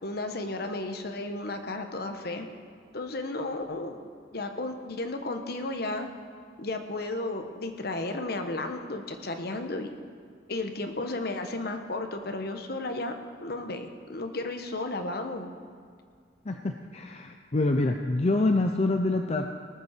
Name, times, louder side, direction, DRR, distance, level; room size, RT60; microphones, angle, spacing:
voice 1, 0.0-2.5 2.9-4.0 4.3-6.1 6.6-9.9 10.5-13.1 13.4-15.5, left 2 dB, 60° left, 6 dB, 1.2 m, -33 dB
voice 2, 16.5-19.5, left 2 dB, 35° left, 5 dB, 0.6 m, -26 dB
19.0 x 7.1 x 6.7 m, 2.2 s
head